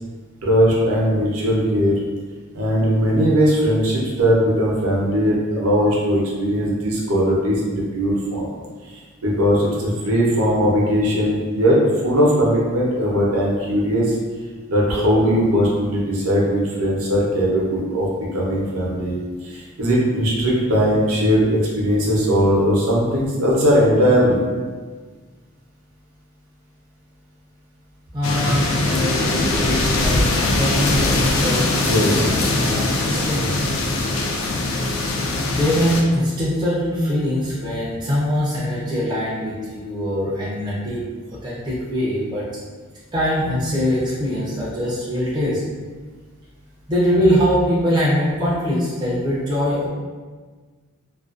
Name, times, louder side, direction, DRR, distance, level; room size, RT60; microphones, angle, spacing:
voice 1, 0.4-1.9 2.5-8.5 8.9-14.2 14.7-18.1 18.3-24.4 31.8-32.2, equal, 75° right, -4 dB, 0.6 m, -19 dB
voice 2, 28.1-30.2 30.6-33.7 35.5-41.0 41.3-42.5 43.1-45.6 46.9-49.9, equal, 20° right, -8 dB, 0.4 m, -22 dB
sound 1, 28.2-36.0, left 2 dB, 65° left, 0.3 m, -21 dB
2.4 x 2.2 x 2.4 m, 1.4 s
head